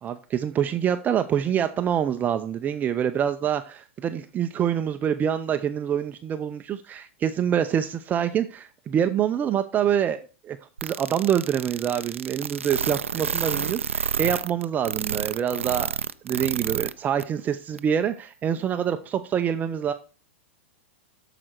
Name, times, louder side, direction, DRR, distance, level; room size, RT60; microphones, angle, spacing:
voice 1, 0.0-16.0 16.2-19.9, right 9 dB, 25° right, 9 dB, 0.6 m, -26 dB
sound 1, 10.8-16.9 17.2-17.3 17.8-17.9, right 7 dB, 90° right, 0.5 m, -28 dB
13.5 x 5.0 x 4.5 m, 0.35 s
hypercardioid pair, 105°, 7 cm